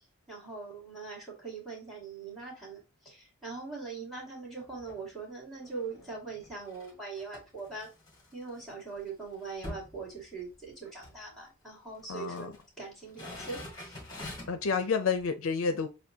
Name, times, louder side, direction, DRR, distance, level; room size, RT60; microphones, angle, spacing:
voice 1, 0.0-7.9 8.3-12.5 12.8-14.0, right 4 dB, ahead, 2.0 m, -42 dB
sound 1, 4.6-5.1 5.5-8.6 9.0-9.1 9.3-10.7 11.0-11.2 12.0-12.6 13.0-14.7 15.2-15.3, left 1 dB, 20° left, 1.5 m, -46 dB
voice 2, 12.1-12.5 14.5-15.9, left 5 dB, 65° left, 0.5 m, -29 dB
6.7 x 2.3 x 2.7 m
head